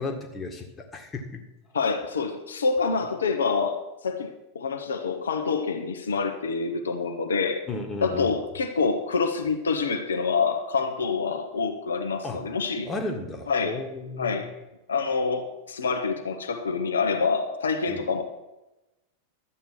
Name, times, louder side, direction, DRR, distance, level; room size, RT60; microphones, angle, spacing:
voice 1, 0.0-1.4 7.7-8.4 12.2-12.4 12.8-14.4 17.9-18.1, left 2 dB, 15° left, 4 dB, 1.9 m, -34 dB
voice 2, 1.7-7.6 8.0-12.9 13.5-13.8 14.2-14.5 14.9-18.2, left 5 dB, 70° left, 5 dB, 1.2 m, -27 dB
12.5 x 8.6 x 6.1 m, 0.97 s
figure-of-eight pair, 90°, 0 cm